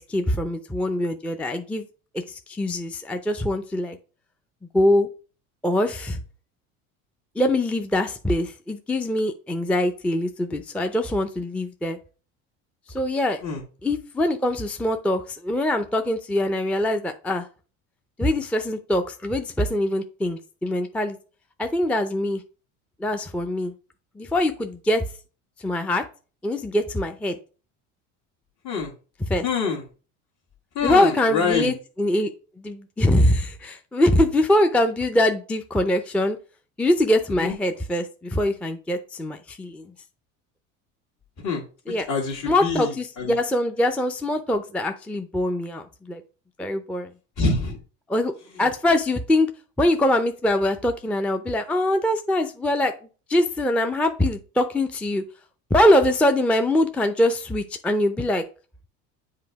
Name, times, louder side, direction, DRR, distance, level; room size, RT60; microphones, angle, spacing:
voice 1, 0.0-1.9 2.1-4.0 4.7-5.1 5.6-6.2 7.4-12.0 12.9-13.4 13.8-17.5 18.2-21.2 21.6-22.4 23.0-23.7 24.2-25.1 25.6-26.0 26.4-27.4 29.3-29.4 30.8-32.3 32.6-36.4 36.8-39.9 41.9-42.1 42.5-46.2 46.6-47.1 48.1-48.3 48.6-49.5 49.8-52.9 53.3-55.2 55.7-58.4, left 1 dB, 5° left, 6 dB, 0.5 m, -23 dB
voice 2, 29.4-29.8 30.8-31.7 37.4-37.5 41.4-43.4 47.4-47.8 48.5-48.7, left 4 dB, 55° left, -5 dB, 1.7 m, -26 dB
7.6 x 2.7 x 4.6 m, 0.36 s
supercardioid pair, 85°, 36 cm